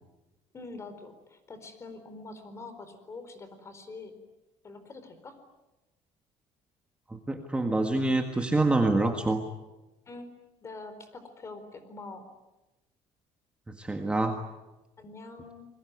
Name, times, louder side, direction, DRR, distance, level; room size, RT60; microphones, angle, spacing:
voice 1, 0.5-4.1 4.6-5.4 10.1-10.3 10.6-12.2 15.0-15.7, left 3 dB, 25° left, 10 dB, 4.4 m, -44 dB
voice 2, 7.1-9.4 13.7-14.4, right 2 dB, 10° right, 4 dB, 1.7 m, -26 dB
28.5 x 22.0 x 9.6 m, 1.0 s
cardioid pair, 160°, 12 cm